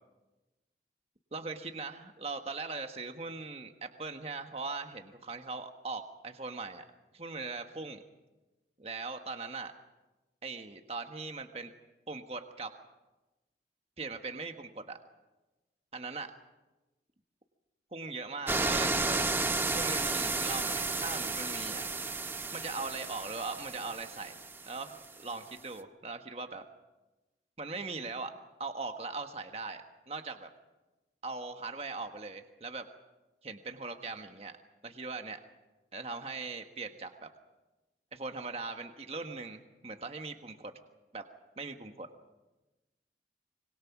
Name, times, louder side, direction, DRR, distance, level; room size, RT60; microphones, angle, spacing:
voice 1, 1.3-6.8 7.1-8.0 8.8-9.7 10.4-11.7 12.1-12.7 14.0-15.0 15.9-16.3 17.9-19.3 19.7-21.8 22.5-24.4 24.7-26.6 27.6-28.3 28.6-30.5 31.2-32.9 33.4-34.6 34.8-35.4 35.9-37.3 38.1-40.7 41.1-41.2 41.6-42.1, right 3 dB, 35° right, 6 dB, 1.4 m, -40 dB
sound 1, 18.5-25.0 25.3-25.4, right 3 dB, 10° right, 0.7 m, -32 dB
25.0 x 23.5 x 6.0 m, 1.1 s
head